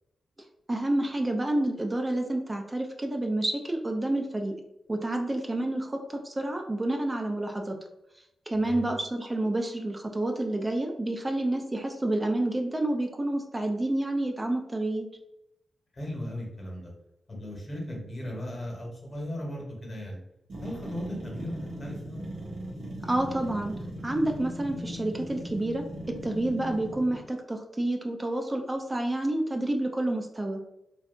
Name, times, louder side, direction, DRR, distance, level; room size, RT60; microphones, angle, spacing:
voice 1, 0.7-4.6 4.9-7.8 8.5-15.1 23.1-30.6, right 1 dB, 30° right, 3 dB, 0.4 m, -29 dB
voice 2, 15.9-16.9 17.3-20.2 20.6-22.2, equal, 45° left, -2 dB, 1.0 m, -37 dB
sound 1, 20.5-27.3, equal, 70° right, 0.7 m, -39 dB
2.7 x 2.3 x 2.4 m, 0.85 s
supercardioid pair, 45°, 0 cm